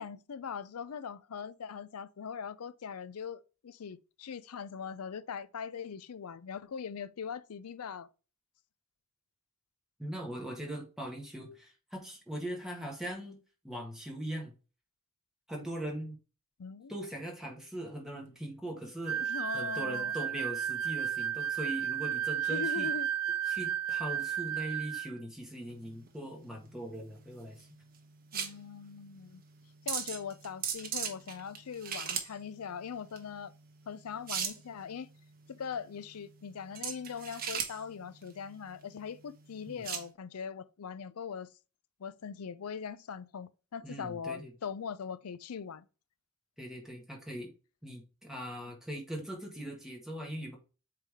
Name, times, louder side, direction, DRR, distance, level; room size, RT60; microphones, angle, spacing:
voice 1, 0.0-8.1 16.6-16.9 19.2-20.1 22.5-23.1 28.3-29.4 29.9-33.5 33.9-35.1 35.5-41.5 42.0-45.9, left 6 dB, 90° left, 0.5 m, -41 dB
voice 2, 10.0-13.4 13.6-14.5 15.5-16.2 16.9-19.2 19.5-22.9 23.5-27.7 39.7-39.8 43.8-44.5 46.6-47.5 47.8-50.6, right 1 dB, ahead, 1.7 m, -40 dB
sound 1, 19.0-25.1, right 9 dB, 85° right, 0.6 m, -33 dB
sound 2, 25.4-40.1, right 7 dB, 40° right, 1.1 m, -40 dB
8.3 x 3.4 x 3.5 m
head